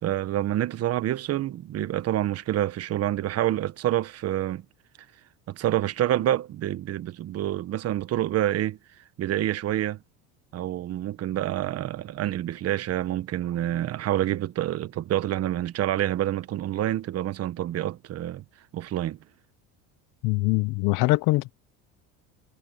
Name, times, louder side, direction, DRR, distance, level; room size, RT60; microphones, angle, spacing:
voice 1, 0.0-4.6 5.5-8.8 9.2-10.0 10.5-18.4 18.7-19.2, right 12 dB, 45° right, 1.2 m, -27 dB
voice 2, 20.2-21.5, left 21 dB, 70° left, 0.8 m, -23 dB
supercardioid pair, 115°, 33 cm